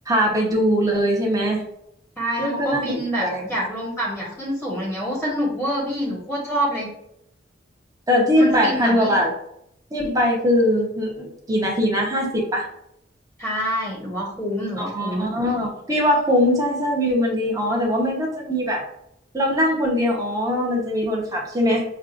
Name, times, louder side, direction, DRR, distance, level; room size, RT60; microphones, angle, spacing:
voice 1, 0.1-1.6 2.4-3.6 8.1-9.3 9.9-12.7 14.9-18.8 19.3-21.8, equal, 20° right, -1 dB, 1.0 m, -21 dB
voice 2, 2.2-6.9 8.4-9.2 13.4-15.3, equal, ahead, -5 dB, 1.1 m, -26 dB
6.4 x 2.4 x 2.5 m, 0.75 s
head